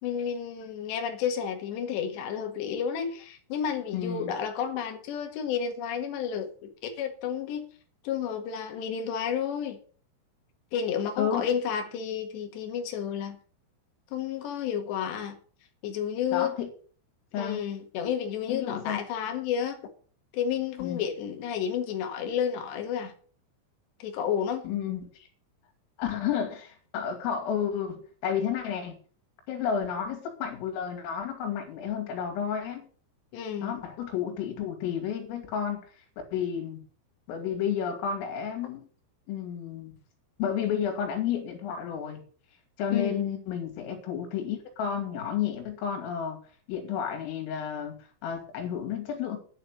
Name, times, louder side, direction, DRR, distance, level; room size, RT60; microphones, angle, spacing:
voice 1, 0.0-6.7 7.0-7.7 8.0-9.8 10.7-13.4 14.1-15.4 15.8-16.6 17.4-19.8 20.3-23.1 24.0-24.6 33.3-33.8 42.9-43.2, left 8 dB, 65° left, 3.7 m, -31 dB
voice 2, 3.9-4.3 11.2-11.5 16.3-16.7 17.3-17.6 18.5-19.0 20.8-21.0 24.6-25.1 26.0-29.0 29.5-32.9 33.6-35.8 36.3-36.8 37.3-38.9 39.3-39.9 40.4-42.2 42.8-46.4 46.7-49.4, left 8 dB, 85° left, 5.0 m, -31 dB
11.0 x 6.7 x 8.1 m
omnidirectional pair, 5.8 m